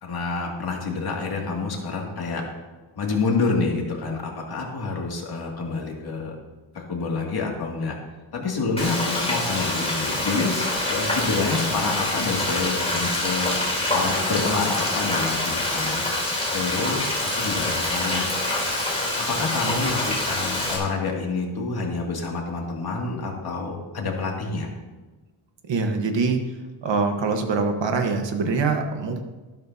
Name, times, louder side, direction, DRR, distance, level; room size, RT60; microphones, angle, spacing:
voice 1, 0.0-2.4 3.0-6.4 6.7-8.0 8.3-13.6 13.9-16.0 16.5-18.3 19.2-24.7, left 4 dB, 50° left, -1 dB, 2.5 m, -28 dB
Frying (food), 8.8-20.8, left 1 dB, 10° left, 3.4 m, -26 dB
voice 2, 25.7-26.4 26.8-29.2, right 4 dB, 60° right, 5 dB, 1.5 m, -24 dB
13.5 x 12.0 x 2.8 m, 1.2 s
wide cardioid pair, 145°, 49 cm